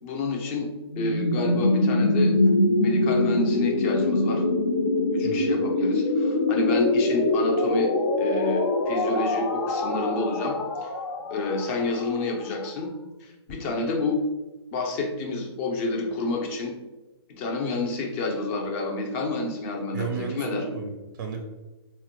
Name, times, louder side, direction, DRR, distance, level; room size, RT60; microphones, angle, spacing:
voice 1, 0.0-0.7 1.0-2.4 2.8-4.4 5.1-7.9 8.2-10.9 11.3-12.9 13.2-14.2 14.7-16.7 17.4-20.6, left 3 dB, 30° left, 2 dB, 0.6 m, -29 dB
sound 1, 0.9-12.7, left 2 dB, 70° left, 0.7 m, -24 dB
voice 2, 19.9-21.4, right 4 dB, 45° right, 4 dB, 0.4 m, -33 dB
4.1 x 2.2 x 2.9 m, 1.1 s
hypercardioid pair, 150°, 14 cm